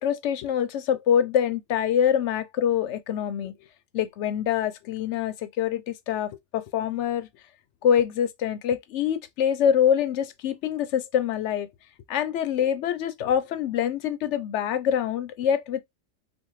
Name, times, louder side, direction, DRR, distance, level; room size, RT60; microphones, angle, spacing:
voice 1, 0.0-3.5 3.9-7.3 7.8-11.7 12.1-15.8, left 9 dB, 70° left, 0.8 m, -25 dB
3.4 x 2.3 x 3.0 m
omnidirectional pair, 1.4 m